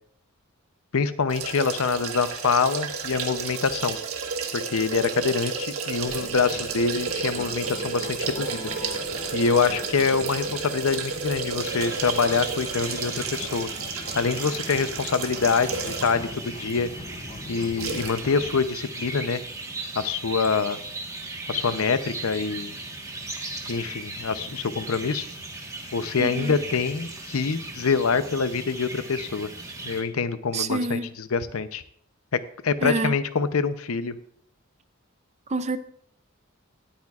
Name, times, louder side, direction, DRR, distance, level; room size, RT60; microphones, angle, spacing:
voice 1, 0.9-4.0 4.5-8.6 9.3-13.7 14.2-16.9 17.5-19.4 19.9-20.8 21.5-22.7 23.7-25.2 25.9-29.5 29.8-31.8 32.3-34.1, left 5 dB, 75° left, 0.7 m, -25 dB
sound 1, 1.3-16.3 16.7-16.8 17.8-18.2 18.5-18.6, right 5 dB, 75° right, 1.5 m, -32 dB
Fixed-wing aircraft airplane, 6.0-18.7, left 2 dB, 30° left, 0.7 m, -43 dB
sound 2, 11.6-30.0, right 2 dB, 15° right, 1.4 m, -37 dB
voice 2, 26.2-26.6 30.5-31.1 32.8-33.1 35.5-35.8, right 3 dB, 30° right, 0.5 m, -27 dB
19.0 x 8.8 x 2.4 m
head